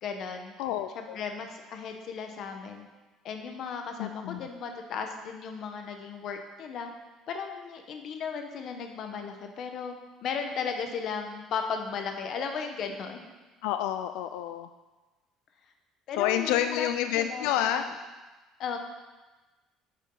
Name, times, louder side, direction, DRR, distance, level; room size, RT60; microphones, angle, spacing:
voice 1, 0.0-0.5 0.9-2.9 3.2-6.9 7.3-9.9 10.2-13.2 16.1-16.9 17.1-17.9 18.6-18.8, left 6 dB, 45° left, 5 dB, 1.1 m, -35 dB
voice 2, 0.6-1.2 4.0-4.5 13.6-14.7 16.2-17.8, left 11 dB, 90° left, 8 dB, 0.4 m, -29 dB
9.7 x 7.3 x 3.9 m, 1.2 s
cardioid pair, 155°, 0 cm